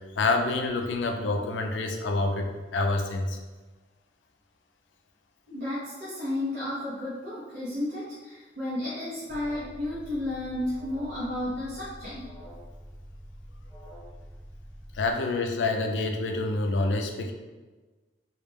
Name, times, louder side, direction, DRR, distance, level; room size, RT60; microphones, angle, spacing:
voice 1, 0.0-3.4 14.9-17.3, left 2 dB, 90° left, 4 dB, 0.4 m, -27 dB
voice 2, 5.5-12.3, left 1 dB, 65° right, -9 dB, 0.7 m, -32 dB
Alarm, 9.3-15.1, equal, 5° left, 0.4 m, -46 dB
2.3 x 2.1 x 3.2 m, 1.3 s
head